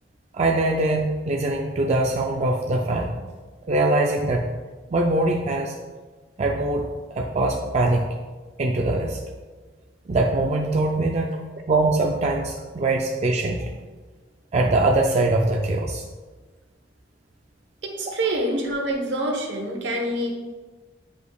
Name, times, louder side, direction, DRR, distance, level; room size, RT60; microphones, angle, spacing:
voice 1, 0.3-3.1 3.7-4.5 4.9-5.8 6.4-8.1 8.6-9.2 10.1-11.4 11.7-13.8 14.5-16.0, right 2 dB, 35° right, 0 dB, 0.4 m, -22 dB
voice 2, 18.0-20.3, right 1 dB, 75° right, 0 dB, 1.1 m, -26 dB
8.3 x 5.0 x 2.3 m, 1.3 s
head